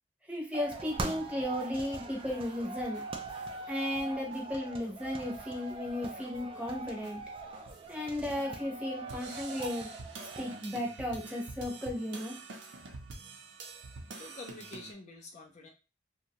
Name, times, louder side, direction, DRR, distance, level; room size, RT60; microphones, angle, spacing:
voice 1, 0.3-3.0 3.7-7.2 7.9-9.9 10.4-12.4, left 1 dB, 5° right, -1 dB, 0.7 m, -35 dB
sound 1, 0.5-10.6, right 2 dB, 30° right, 0.3 m, -42 dB
sound 2, 0.7-3.6 4.0-4.4 4.8-4.9 5.2-8.4 9.1-14.9, right 3 dB, 90° right, 0.6 m, -48 dB
voice 2, 14.2-15.7, left 2 dB, 40° left, 1 dB, 0.4 m, -47 dB
2.6 x 2.2 x 2.8 m, 0.32 s
head